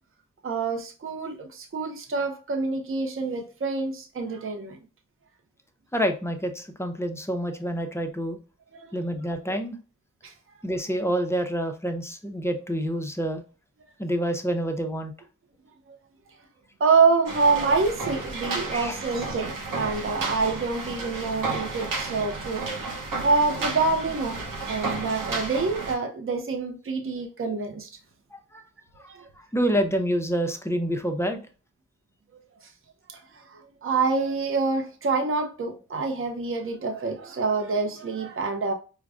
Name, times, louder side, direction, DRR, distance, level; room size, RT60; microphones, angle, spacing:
voice 1, 0.4-4.8 8.7-8.9 10.2-10.3 15.9-16.0 16.8-22.6 23.2-24.4 24.7-27.9 29.1-29.3 32.6-32.7 33.1-38.7, right 4 dB, 40° right, 0.6 m, -26 dB
voice 2, 5.9-8.4 8.9-9.8 10.6-13.4 14.0-15.1 18.7-19.0 28.3-28.6 29.5-31.4, equal, 10° left, 0.5 m, -27 dB
sound 1, 17.3-25.9, right 3 dB, 85° right, 0.9 m, -32 dB
4.8 x 2.1 x 2.4 m
wide cardioid pair, 65°, 32 cm